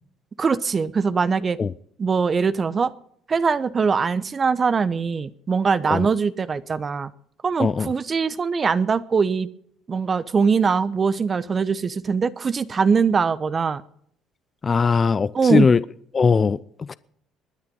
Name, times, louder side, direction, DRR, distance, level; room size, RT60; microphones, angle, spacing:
voice 1, 0.4-1.6 2.0-2.9 3.3-7.1 7.4-9.5 9.9-13.8 15.3-15.7, right 5 dB, 35° right, 0.9 m, -22 dB
voice 2, 7.6-7.9 14.6-15.8 16.1-16.9, left 5 dB, 35° left, 0.6 m, -20 dB
21.0 x 9.7 x 5.4 m
supercardioid pair, 75°, 0 cm